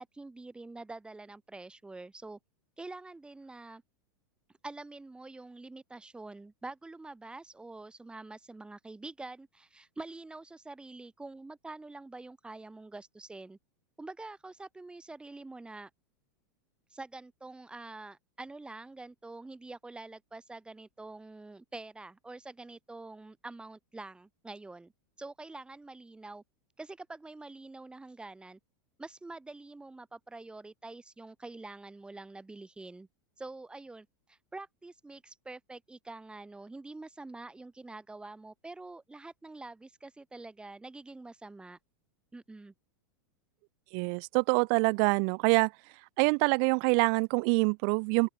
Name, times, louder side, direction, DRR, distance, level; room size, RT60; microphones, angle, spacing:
voice 1, 0.0-2.4 2.8-3.8 4.6-13.6 14.0-15.9 16.9-24.9 25.2-26.4 26.8-28.6 29.0-33.1 33.4-41.8 42.3-42.7, right 2 dB, 10° right, 7.0 m, -46 dB
voice 2, 43.9-45.7 46.2-48.3, right 40 dB or more, 55° right, 2.0 m, -25 dB
open air
supercardioid pair, 125°, 11 cm